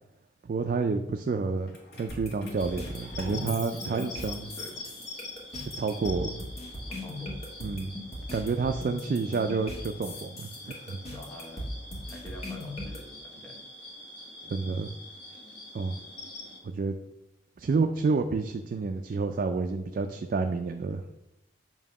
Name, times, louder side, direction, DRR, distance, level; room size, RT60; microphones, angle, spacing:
voice 1, 0.4-4.4 5.7-6.4 7.6-8.0 8.3-11.0 14.4-14.9 15.7-16.0 16.6-17.0 17.6-21.1, right 4 dB, 45° right, 6 dB, 0.3 m, -29 dB
Keys jangling, 1.7-4.8 5.3-6.6, left 3 dB, 60° left, 1.3 m, -46 dB
sound 1, 2.1-13.0, left 1 dB, 35° left, 1.3 m, -39 dB
sound 2, 2.6-16.6, left 2 dB, 85° left, 1.7 m, -45 dB
voice 2, 3.5-4.9 6.9-7.4 8.2-8.3 11.1-11.7 12.1-13.6 14.0-14.3, equal, 10° left, -1 dB, 1.1 m, -47 dB
7.2 x 2.8 x 5.3 m, 0.91 s
head